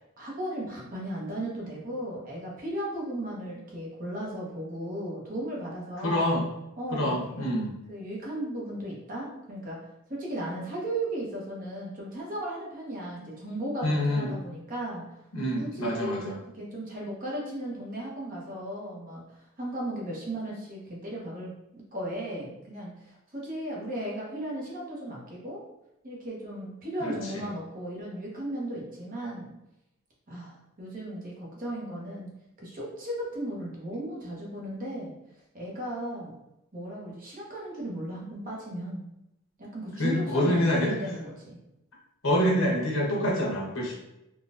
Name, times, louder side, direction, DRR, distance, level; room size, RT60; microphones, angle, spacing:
voice 1, 0.2-6.3 6.8-7.5 7.9-9.8 10.1-15.0 15.6-19.2 19.6-25.6 26.0-29.5 30.3-32.3 32.6-35.1 35.5-36.3 36.7-39.0 39.6-41.6, right 1 dB, 40° right, -4 dB, 0.9 m, -36 dB
voice 2, 6.0-6.5 6.9-7.7 13.8-14.3 15.3-16.4 27.0-27.4 40.0-40.9 42.2-43.9, equal, 75° left, -3 dB, 1.0 m, -26 dB
3.9 x 2.3 x 2.5 m, 0.89 s
head